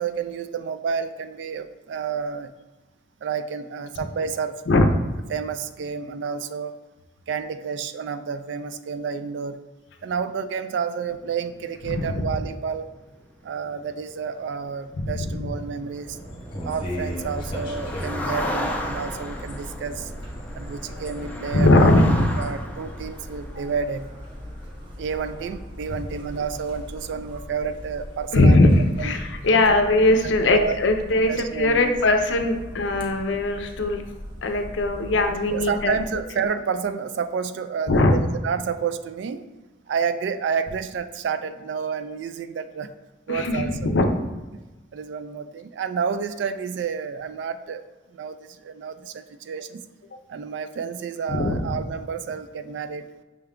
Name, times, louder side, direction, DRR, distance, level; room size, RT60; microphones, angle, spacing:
voice 1, 0.0-2.5 3.2-4.6 5.3-6.8 7.3-9.6 10.0-12.9 13.4-16.2 16.6-20.1 20.5-21.9 22.4-24.1 25.0-28.6 29.0-29.1 29.5-29.7 30.5-30.8 31.3-31.9 35.3-39.5 39.9-42.9 43.3-43.9 44.9-47.8 48.1-49.9 50.3-53.1, right 6 dB, 70° right, 11 dB, 0.3 m, -30 dB
sound 1, 11.0-26.3 26.6-27.0 27.3-27.5, left 1 dB, 10° left, 0.4 m, -36 dB
voice 2, 11.9-12.3 15.0-15.5 21.5-22.3 28.3-34.0 34.4-36.0 37.9-38.2 43.3-44.1 51.3-51.6, left 2 dB, 80° left, 6 dB, 0.5 m, -20 dB
sound 2, 16.0-22.5, equal, 25° left, 0.9 m, -36 dB
sound 3, 16.8-36.2, equal, 25° right, 0.7 m, -40 dB
5.7 x 2.2 x 3.6 m, 1.1 s
head